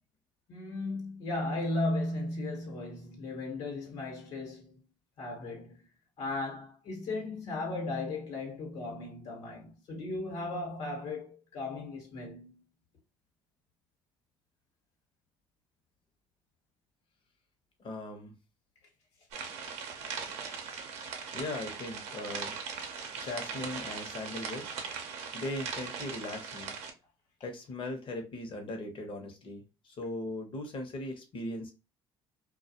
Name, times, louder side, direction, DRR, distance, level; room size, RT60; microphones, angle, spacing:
voice 1, 0.5-4.8 5.2-5.8 6.2-12.6 25.0-25.3, left 2 dB, 70° left, 1.1 m, -36 dB
voice 2, 17.8-18.3 21.3-22.6 23.2-24.7 25.3-26.7 27.4-31.7, left 1 dB, 50° left, 0.9 m, -39 dB
sound 1, 19.3-26.9, right 6 dB, 70° right, 0.6 m, -40 dB
2.3 x 2.3 x 2.7 m
supercardioid pair, 75°, 11 cm